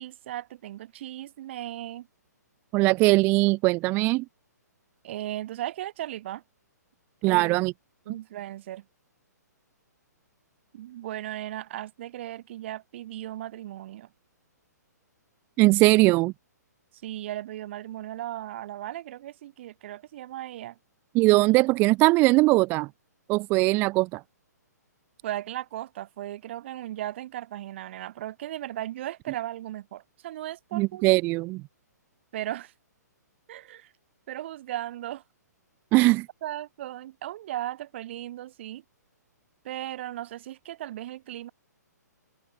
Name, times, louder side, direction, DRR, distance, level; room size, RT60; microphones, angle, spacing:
voice 1, 0.0-2.1 5.0-6.4 7.3-7.6 8.1-8.8 10.7-14.1 17.0-20.8 25.2-31.1 32.3-32.7 33.5-33.9 34.3-35.2 36.4-38.8 39.6-41.5, right 13 dB, 40° right, 2.1 m, -36 dB
voice 2, 2.7-4.2 7.2-7.7 15.6-16.3 21.1-22.9 23.3-24.2 30.7-31.6 35.9-36.3, right 22 dB, 20° right, 0.7 m, -20 dB
figure-of-eight pair, 125°, 10 cm